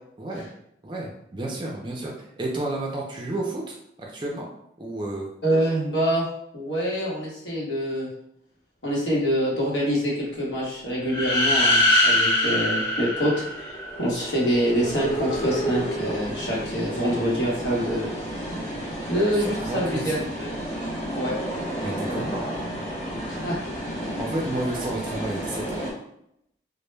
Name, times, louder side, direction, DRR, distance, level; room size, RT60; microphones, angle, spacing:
voice 1, 0.8-4.5 4.8-5.3 19.3-20.2 21.8-22.4 24.2-25.9, right 2 dB, 25° right, -1 dB, 0.4 m, -31 dB
voice 2, 5.4-6.3 6.5-8.1 8.8-18.1 19.1-20.5 21.1-21.3 23.3-23.6, equal, 80° left, -4 dB, 0.9 m, -25 dB
sound 1, 11.1-14.0, left 1 dB, 55° left, 1.1 m, -22 dB
sound 2, 11.8-25.9, right 1 dB, 35° left, 0.7 m, -32 dB
2.1 x 2.1 x 3.1 m, 0.76 s
head